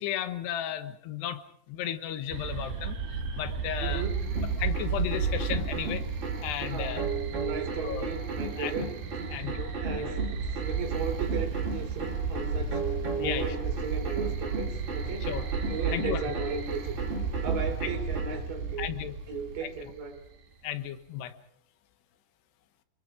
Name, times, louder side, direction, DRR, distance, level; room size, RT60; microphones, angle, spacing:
voice 1, 0.0-4.0 4.6-6.0 6.4-7.1 7.8-8.1 8.6-8.7 9.3-9.7 10.0-10.1 13.2-13.6 15.2-15.4 15.9-16.2 17.8-17.9 18.8-19.2 19.6-19.9 20.6-21.3, left 10 dB, 80° left, 10 dB, 3.3 m, -34 dB
sound 1, 2.3-20.3, right 5 dB, 80° right, 5.4 m, -33 dB
voice 2, 3.8-4.3 6.6-7.1 7.4-12.8 13.2-15.3 15.7-17.1 17.4-18.9 19.3-20.2, right 5 dB, 55° right, 5 dB, 4.9 m, -36 dB
sound 2, 4.3-18.4, right 3 dB, 30° right, 3.8 m, -36 dB
29.0 x 22.0 x 5.0 m, 0.69 s
omnidirectional pair, 4.8 m